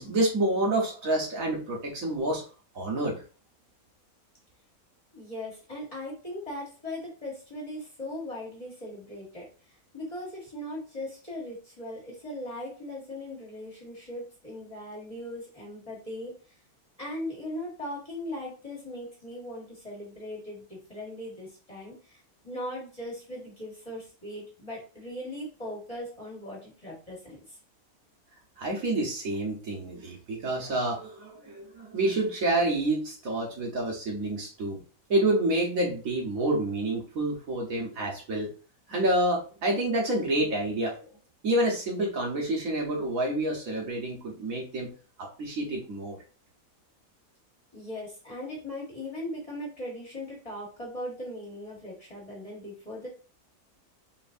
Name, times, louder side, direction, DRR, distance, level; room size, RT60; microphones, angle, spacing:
voice 1, 0.0-2.4 2.7-3.2 28.6-34.8 35.1-38.5 38.9-41.1 41.4-44.9 45.2-46.2, right 1 dB, 65° right, 0 dB, 1.5 m, -28 dB
voice 2, 5.1-16.6 17.0-27.6 47.7-53.1, left 1 dB, 25° left, -5 dB, 1.5 m, -39 dB
4.2 x 3.2 x 2.6 m, 0.37 s
omnidirectional pair, 1.6 m